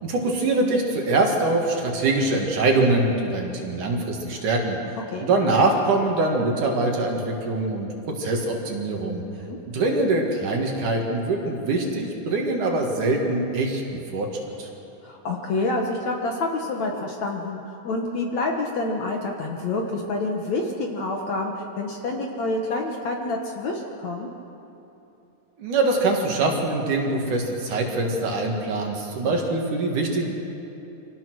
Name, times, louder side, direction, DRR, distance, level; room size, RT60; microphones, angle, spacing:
voice 1, 0.0-4.8 5.2-7.9 8.2-9.2 9.7-13.8 14.1-14.3 14.6-14.7 25.6-30.3, right 2 dB, 60° right, 1 dB, 3.3 m, -23 dB
voice 2, 15.0-24.3, left 2 dB, 60° left, 1 dB, 2.2 m, -28 dB
26.0 x 17.5 x 6.3 m, 3.0 s
omnidirectional pair, 4.4 m